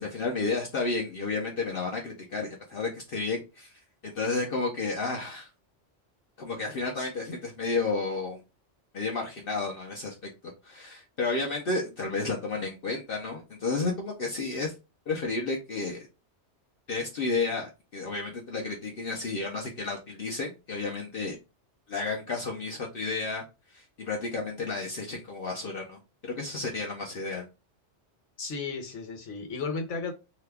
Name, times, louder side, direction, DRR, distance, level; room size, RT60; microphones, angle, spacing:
voice 1, 0.0-3.7 4.0-5.5 6.4-8.4 8.9-14.7 15.1-16.1 16.9-21.4 21.9-23.4 23.7-27.4, left 3 dB, 55° left, -1 dB, 0.8 m, -32 dB
voice 2, 28.4-30.1, left 4 dB, 90° left, 2 dB, 1.2 m, -34 dB
2.8 x 2.2 x 3.3 m, 0.27 s
omnidirectional pair, 1.2 m